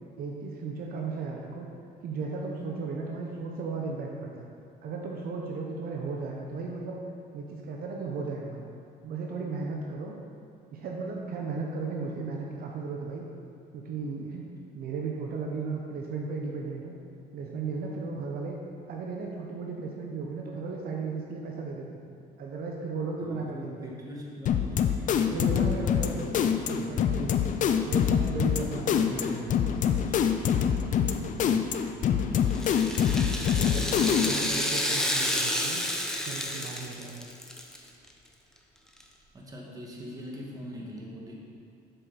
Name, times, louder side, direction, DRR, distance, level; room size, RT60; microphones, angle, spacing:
voice 1, 0.2-1.7 2.0-4.4 4.8-7.0 7.3-8.6 9.0-10.2 10.7-13.3 13.7-16.9 17.3-18.6 18.9-22.0 22.4-23.9 25.3-26.1 26.6-27.4 27.8-29.5 33.5-35.8 36.2-37.3, right 4 dB, 60° right, 0 dB, 0.9 m, -35 dB
voice 2, 23.2-26.3 26.7-27.2 28.8-32.6 39.3-41.3, equal, 20° right, -3 dB, 1.6 m, -42 dB
sound 1, 24.5-34.6, left 8 dB, 50° left, 0.5 m, -25 dB
Rattle (instrument), 32.5-37.8 38.1-38.2 39.0-39.1, left 1 dB, 5° left, 0.7 m, -30 dB
7.8 x 6.3 x 4.0 m, 2.3 s
cardioid pair, 110°, 17 cm